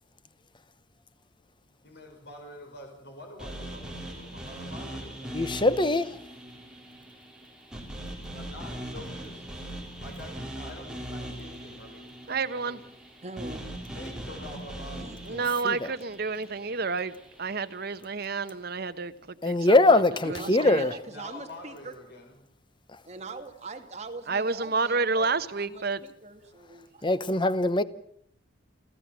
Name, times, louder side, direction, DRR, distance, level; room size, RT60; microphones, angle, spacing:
voice 1, 1.8-5.6 8.3-9.4 10.0-12.1 12.5-12.9 13.9-15.0 20.1-20.4 21.0-22.4, left 1 dB, 60° left, 6.0 m, -46 dB
sound 1, 3.4-17.6, right 1 dB, 5° right, 4.0 m, -41 dB
voice 2, 5.3-6.2 15.6-15.9 19.4-20.9 27.0-27.8, left 2 dB, 25° left, 0.9 m, -22 dB
voice 3, 12.3-12.8 15.3-17.1 17.4-19.1 19.4-20.0 20.3-20.8 24.3-26.0, right 4 dB, 55° right, 1.1 m, -29 dB
voice 4, 13.2-13.6 15.0-15.2 20.2-21.9 23.0-27.4, right 2 dB, 35° right, 2.3 m, -42 dB
29.0 x 14.0 x 7.4 m
head